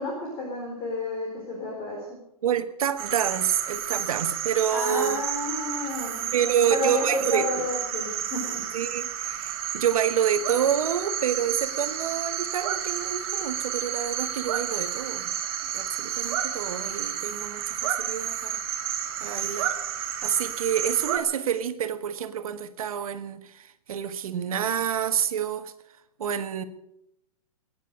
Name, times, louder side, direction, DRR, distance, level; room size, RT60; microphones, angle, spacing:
voice 1, 0.0-2.2 4.7-8.6, left 2 dB, 25° left, 4.3 m, -31 dB
voice 2, 2.4-5.2 6.3-7.6 8.7-15.3 15.7-18.6 19.2-19.7 20.2-25.7 26.2-26.6, right 9 dB, 70° right, 1.5 m, -28 dB
sound 1, 3.0-21.2, right 9 dB, 40° right, 2.0 m, -31 dB
20.5 x 10.0 x 6.8 m
hypercardioid pair, 160°, 19 cm